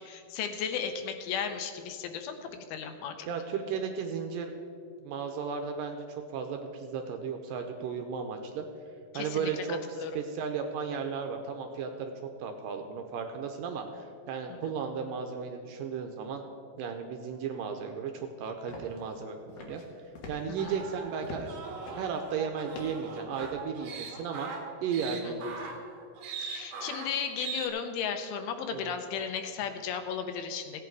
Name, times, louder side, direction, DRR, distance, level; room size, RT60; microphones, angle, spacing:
voice 1, 0.0-3.3 9.1-9.6 10.0-10.1 14.5-14.7 20.5-20.8 25.2-25.3 26.4-30.8, left 7 dB, 80° left, 7 dB, 2.7 m, -35 dB
voice 2, 3.3-4.5 5.0-6.1 6.3-8.7 9.1-12.1 12.4-16.4 16.8-19.8 20.3-21.7 21.9-24.5 24.8-25.6 28.7-28.9, right 6 dB, 80° right, 5 dB, 2.1 m, -35 dB
sound 1, 18.7-19.2 19.5-19.9 20.1-21.5 21.8-22.2 22.7-23.6, left 3 dB, 65° left, 2.8 m, -44 dB
sound 2, 20.6-27.7, right 5 dB, 60° right, 2.1 m, -41 dB
16.0 x 8.3 x 4.6 m, 2.4 s
omnidirectional pair, 4.4 m